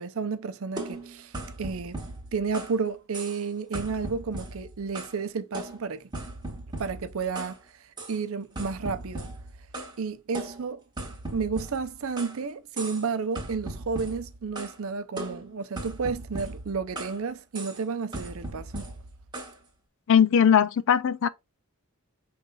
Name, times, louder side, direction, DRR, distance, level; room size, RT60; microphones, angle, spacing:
voice 1, 0.0-2.0 2.3-6.0 6.8-7.6 8.1-9.3 10.0-10.8 11.3-18.8, right 5 dB, 65° right, 0.5 m, -31 dB
sound 1, 0.8-2.8 3.1-3.5 3.7-5.2 5.5-7.6 8.0-8.2 8.6-10.0 10.3-12.4 12.8-13.1 13.4-14.8 15.2-17.2 17.5-17.8 18.1-19.6, right 2 dB, 20° right, 1.2 m, -38 dB
voice 2, 20.1-21.3, left 8 dB, 60° left, 0.4 m, -20 dB
5.2 x 3.3 x 2.3 m
head